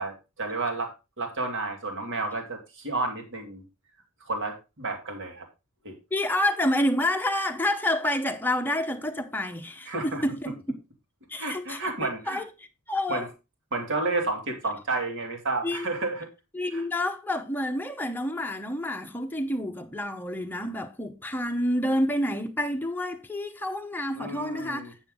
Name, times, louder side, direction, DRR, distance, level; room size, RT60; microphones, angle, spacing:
voice 1, 0.0-3.6 4.3-5.5 5.8-6.0 9.9-10.2 11.4-12.4 13.1-13.3 13.7-16.3 16.7-16.8 24.1-24.9, right 3 dB, 60° right, 2.3 m, -31 dB
voice 2, 6.1-10.6 11.3-13.3 15.6-15.9 16.5-25.0, left 1 dB, 10° left, 0.9 m, -29 dB
9.0 x 7.1 x 3.7 m
head